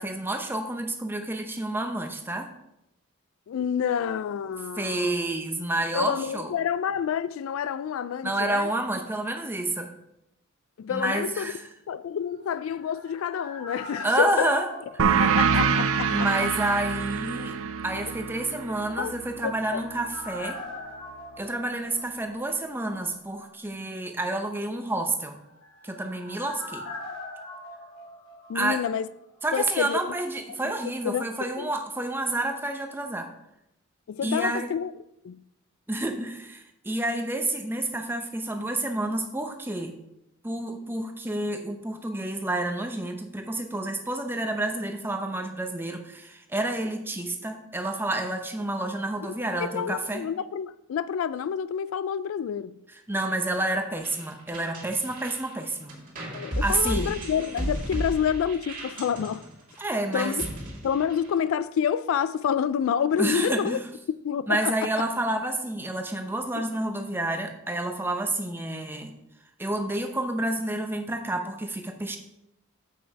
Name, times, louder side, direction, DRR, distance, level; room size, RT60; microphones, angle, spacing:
voice 1, 0.0-2.5 4.8-6.5 8.2-9.9 10.9-11.6 14.0-14.7 14.9-15.2 16.1-17.5 17.8-20.6 21.4-25.4 25.8-26.8 28.5-28.8 29.4-33.3 34.2-34.7 35.9-39.9 40.4-50.2 53.1-55.9 56.6-57.1 59.8-60.4 63.2-63.8 64.5-69.1 69.6-72.2, right 2 dB, 10° right, 0.7 m, -29 dB
voice 2, 3.5-5.3 5.9-8.7 10.8-11.5 11.9-14.5 15.2-16.3 19.0-19.1 19.4-19.8 28.5-29.1 29.5-30.0 30.6-30.7 31.0-31.2 31.6-31.7 34.1-35.4 49.2-49.3 49.6-52.8 56.3-59.5 60.1-60.5 60.8-63.8 64.2-65.1 66.5-66.7, left 8 dB, 75° left, 0.3 m, -28 dB
sound 1, 12.3-16.2 16.4-16.5 18.9-22.7 22.9-23.0 25.3-29.1 29.4-29.5, left 2 dB, 90° left, 2.6 m, -42 dB
sound 2, 15.0-20.2, right 6 dB, 75° right, 0.5 m, -26 dB
sound 3, 54.0-61.5, right 1 dB, 40° right, 2.4 m, -35 dB
7.5 x 5.9 x 4.6 m
head